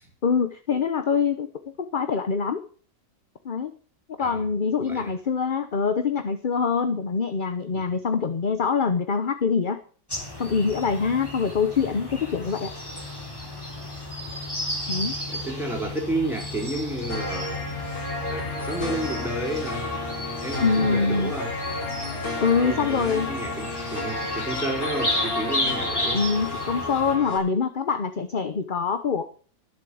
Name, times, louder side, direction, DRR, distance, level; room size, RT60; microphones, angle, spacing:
voice 1, 0.2-1.5 1.8-2.6 3.4-3.7 4.2-9.8 10.4-12.7 14.9-15.1 20.6-21.3 22.4-23.3 26.1-29.2, left 5 dB, 40° left, 9 dB, 0.9 m, -24 dB
voice 2, 4.8-5.1 7.7-7.8 15.3-17.5 18.3-19.9 20.1-21.8 22.6-26.2, right 2 dB, ahead, 0 dB, 4.3 m, -31 dB
sound 1, 10.1-27.2, left 1 dB, 15° left, 3.5 m, -33 dB
sound 2, 17.1-27.4, left 2 dB, 70° left, 4.1 m, -32 dB
14.0 x 7.5 x 7.8 m, 0.43 s
omnidirectional pair, 1.6 m